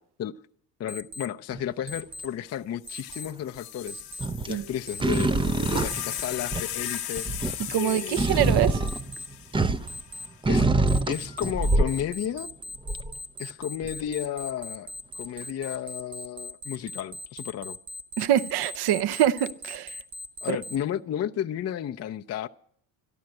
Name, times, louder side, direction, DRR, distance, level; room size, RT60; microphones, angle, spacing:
voice 1, 0.8-4.0 4.5-5.3 5.7-7.3 7.7-8.4 10.5-10.7 11.1-12.5 13.4-17.8 20.4-22.5, left 10 dB, 35° left, 0.6 m, -33 dB
Alarm, 0.9-1.3 1.9-2.3 2.9-3.3 3.9-4.3 4.9-5.3 5.9-6.3 6.9-7.3 7.9-8.3 8.9-9.3 9.9-10.3 10.9-20.8, left 1 dB, 35° right, 1.2 m, -39 dB
sound 1, 1.5-1.9 4.2-4.6 5.0-6.8 7.2-10.0 10.4-12.1 12.9-13.1 13.8-13.9, right 2 dB, 10° right, 0.5 m, -25 dB
sound 2, 2.5-2.6 2.8-10.2 11.1-11.6, left 11 dB, 50° left, 1.3 m, -37 dB
voice 2, 7.7-8.8 18.2-19.9 20.5-20.6, right 11 dB, 55° right, 0.8 m, -24 dB
13.0 x 12.0 x 7.7 m
supercardioid pair, 70°, 47 cm